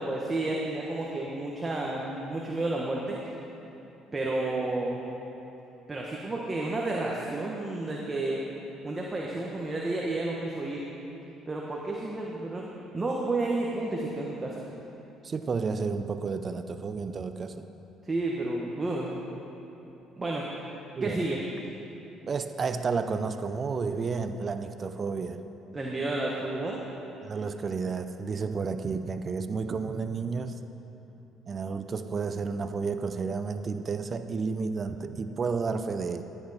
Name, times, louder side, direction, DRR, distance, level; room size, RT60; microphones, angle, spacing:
voice 1, 0.0-3.2 4.1-5.0 5.9-8.4 8.8-10.8 11.5-12.7 12.9-14.6 18.0-19.2 20.2-20.6 21.0-21.4 25.7-26.8, right 2 dB, 25° right, -2 dB, 1.3 m, -31 dB
voice 2, 15.2-17.7 21.0-21.3 22.3-25.4 27.2-30.6 31.5-36.2, right 5 dB, 40° right, 10 dB, 0.5 m, -31 dB
14.5 x 9.0 x 4.2 m, 3.0 s
supercardioid pair, 75°, 0 cm